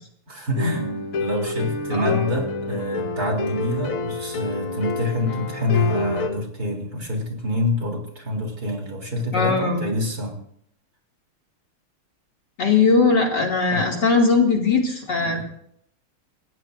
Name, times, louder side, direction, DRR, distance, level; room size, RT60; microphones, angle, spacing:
voice 1, 0.3-10.4 13.7-14.0 15.2-15.4, left 1 dB, 45° right, 1 dB, 3.9 m, -26 dB
sound 1, 0.6-6.3, left 3 dB, 80° left, 2.2 m, -28 dB
voice 2, 1.9-2.3 9.3-9.9 12.6-15.4, left 4 dB, 50° left, 0 dB, 3.2 m, -20 dB
30.0 x 15.0 x 2.6 m, 0.70 s
omnidirectional pair, 2.4 m